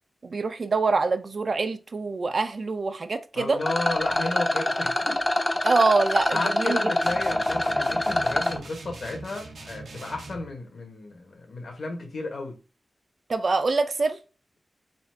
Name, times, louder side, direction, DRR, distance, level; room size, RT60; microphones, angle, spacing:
voice 1, 0.2-3.6 5.6-6.8 13.3-14.2, right 3 dB, 50° right, 0.5 m, -25 dB
voice 2, 3.3-5.2 6.3-12.6, left 2 dB, 65° left, 1.3 m, -33 dB
Rattle, 3.6-8.6, left 1 dB, 20° left, 0.5 m, -25 dB
sound 1, 7.0-10.5, right 3 dB, 85° right, 0.9 m, -42 dB
4.1 x 2.4 x 4.4 m
wide cardioid pair, 120°, 0 cm